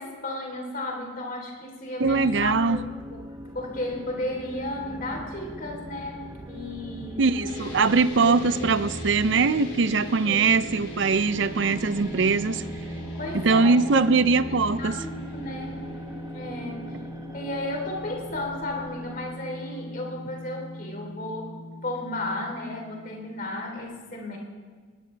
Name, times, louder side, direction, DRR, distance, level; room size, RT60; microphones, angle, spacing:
voice 1, 0.0-2.8 3.1-3.2 3.5-7.2 7.8-7.9 8.2-8.7 9.9-10.5 13.2-14.0 14.8-15.8 16.3-17.1 17.3-21.5 21.8-24.4, left 1 dB, 45° left, 3.7 m, -34 dB
sound 1, 2.0-19.5, equal, 15° right, 0.9 m, -41 dB
voice 2, 2.0-2.8 7.2-12.6 13.3-15.0, right 4 dB, 65° right, 0.6 m, -22 dB
sound 2, 7.5-23.8, equal, 75° left, 4.0 m, -39 dB
20.0 x 20.0 x 3.4 m
head